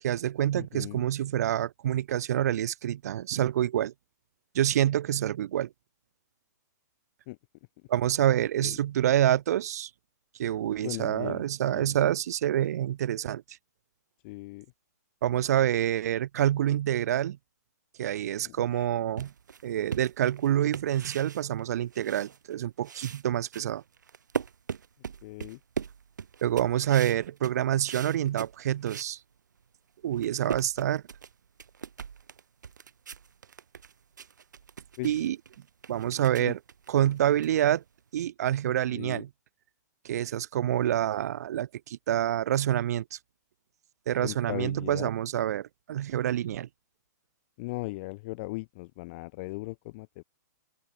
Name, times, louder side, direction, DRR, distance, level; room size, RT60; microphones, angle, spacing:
voice 1, 0.0-3.9 4.5-5.7 7.9-9.9 10.4-13.4 15.2-17.4 18.0-19.3 19.6-23.8 26.4-29.2 30.0-31.0 35.0-35.4 35.9-36.6 36.9-37.8 38.1-39.3 40.0-43.2 44.1-46.7, right 11 dB, 60° right, 1.2 m, -27 dB
voice 2, 0.5-1.1 7.3-7.4 8.6-8.8 10.8-11.4 11.7-11.9 14.2-14.7 18.4-18.9 25.2-25.6 35.0-35.2 36.4-36.5 38.9-39.2 44.2-45.1 47.6-50.2, left 23 dB, 40° left, 1.5 m, -38 dB
sound 1, 19.2-22.6 22.8-29.1 29.6-29.7 30.0-38.1, right 7 dB, 85° right, 0.9 m, -40 dB
open air
hypercardioid pair, 140°, 10 cm